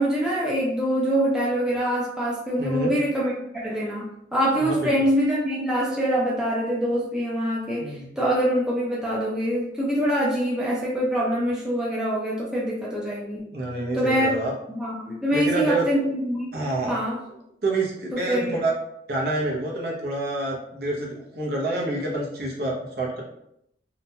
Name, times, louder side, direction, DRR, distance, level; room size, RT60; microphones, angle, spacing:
voice 1, 0.0-13.5 13.9-14.3 14.7-16.6 16.9-17.2 18.1-18.6, equal, 5° right, -6 dB, 0.4 m, -24 dB
voice 2, 2.6-2.9 4.6-4.9 7.8-8.0 13.5-14.5 15.3-15.8 16.5-17.0 17.6-18.7 19.1-23.2, right 2 dB, 55° right, -3 dB, 0.7 m, -27 dB
2.9 x 2.2 x 2.7 m, 0.77 s
head